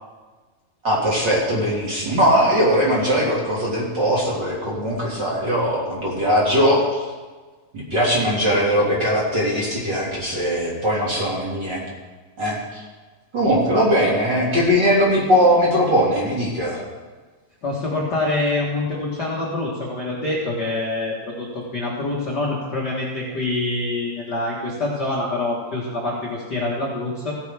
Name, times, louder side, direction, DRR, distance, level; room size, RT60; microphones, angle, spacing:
voice 1, 0.8-7.0 7.9-11.8 12.4-12.8 13.3-16.8, equal, 35° right, -5 dB, 2.3 m, -20 dB
voice 2, 17.6-27.3, left 2 dB, 45° left, -5 dB, 1.5 m, -25 dB
16.0 x 9.3 x 3.4 m, 1.3 s
omnidirectional pair, 3.8 m